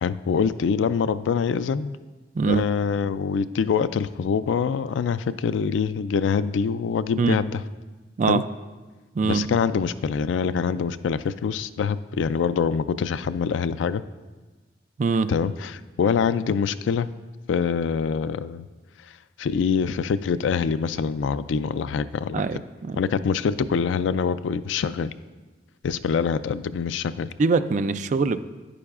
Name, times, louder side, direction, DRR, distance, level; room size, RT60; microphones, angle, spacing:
voice 1, 0.0-2.0 2.5-7.6 8.3-8.4 9.2-14.0 15.3-17.1 17.5-18.7 19.4-22.4 23.0-25.1 25.8-27.3, left 6 dB, 85° left, 14 dB, 0.3 m, -25 dB
voice 2, 15.0-15.3 22.3-22.6 22.9-23.0 27.4-28.4, right 4 dB, 40° right, 11 dB, 0.3 m, -22 dB
10.0 x 9.9 x 2.4 m, 1.3 s
head